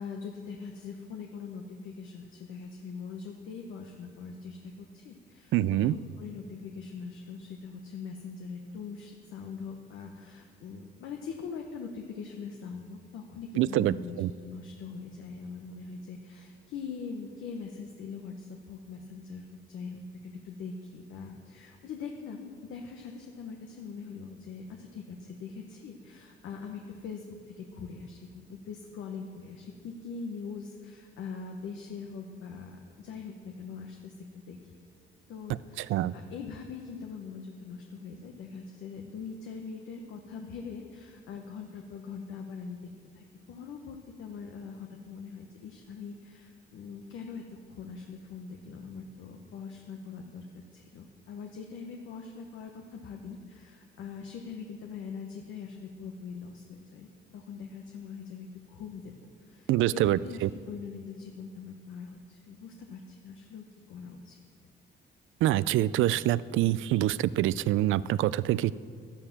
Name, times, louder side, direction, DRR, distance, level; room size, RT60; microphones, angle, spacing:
voice 1, 0.0-27.2 27.6-34.1 34.5-34.7 35.3-42.8 43.1-50.5 50.7-59.1 59.4-64.4, left 5 dB, 85° left, 3 dB, 1.1 m, -42 dB
voice 2, 5.5-5.9 13.6-14.3 35.8-36.1 59.7-60.5 65.4-68.7, right 14 dB, 80° right, 18 dB, 0.4 m, -26 dB
12.0 x 11.5 x 7.3 m, 2.1 s
cardioid pair, 90°, 20 cm